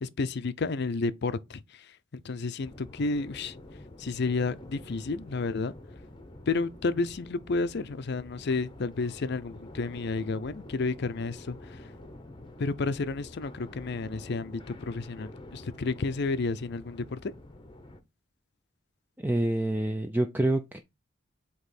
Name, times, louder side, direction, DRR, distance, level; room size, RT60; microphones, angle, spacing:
voice 1, 0.0-1.6 2.2-3.5 4.0-5.7 6.5-11.6 12.6-14.6 14.9-17.3, left 3 dB, 60° left, 0.5 m, -31 dB
sound 1, 2.6-18.0, left 1 dB, 25° left, 0.8 m, -47 dB
voice 2, 19.2-20.8, right 1 dB, 10° right, 0.5 m, -27 dB
7.9 x 3.0 x 4.2 m
head